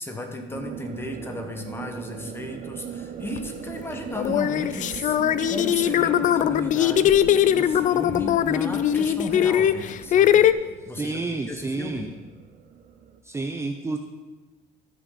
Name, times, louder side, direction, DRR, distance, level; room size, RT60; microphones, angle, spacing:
voice 1, 0.0-5.2 5.5-10.5 10.8-11.2 11.5-12.1, left 1 dB, 15° left, 4 dB, 1.3 m, -35 dB
sound 1, 0.5-13.2, right 8 dB, 55° right, 0.8 m, -40 dB
sound 2, 3.4-3.5 4.2-10.5, left 10 dB, 50° left, 0.4 m, -20 dB
voice 2, 10.9-12.1 13.2-14.0, right 3 dB, 15° right, 5 dB, 0.5 m, -30 dB
13.5 x 6.3 x 4.0 m, 1.2 s
cardioid pair, 110°, 17 cm